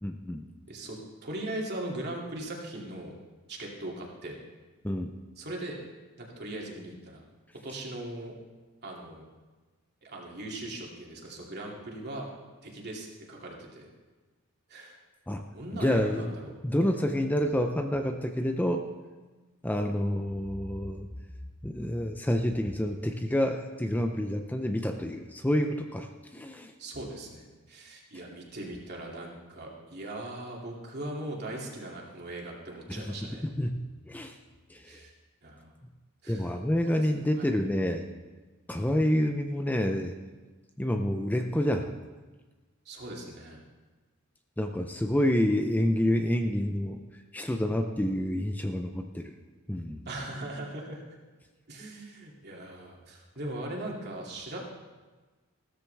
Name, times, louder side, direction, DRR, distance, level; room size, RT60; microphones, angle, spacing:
voice 1, 0.0-0.4 4.8-5.1 15.3-15.4 15.7-16.3 16.6-18.8 19.6-21.1 21.6-26.7 32.9-33.1 33.6-34.4 34.7-35.0 36.3-38.1 38.7-40.2 40.8-41.9 44.6-47.0 47.3-49.3 49.7-50.0, left 1 dB, 10° left, 5 dB, 0.5 m, -28 dB
voice 2, 0.7-3.1 3.5-4.4 5.4-5.8 6.4-7.2 7.6-8.3 8.8-9.2 10.0-12.3 12.6-13.9 14.7-14.9 15.3-16.5 16.8-16.9 26.8-33.4 34.8-35.1 35.4-35.7 36.2-36.5 36.9-37.0 37.4-37.5 42.8-43.6 50.1-51.0 51.7-54.6, right 1 dB, 50° right, -2 dB, 2.7 m, -39 dB
15.5 x 13.5 x 3.4 m, 1.3 s
head